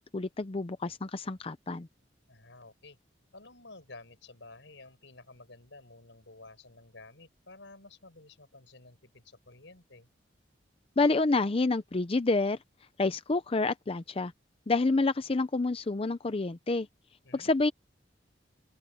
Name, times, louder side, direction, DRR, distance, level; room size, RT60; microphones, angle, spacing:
voice 1, 0.0-1.9 11.0-12.6 13.0-14.3 14.7-16.9 17.3-17.7, left 3 dB, 30° left, 0.6 m, -28 dB
voice 2, 2.3-3.0 3.3-10.1 17.2-17.5, left 2 dB, 85° left, 5.3 m, -52 dB
open air
head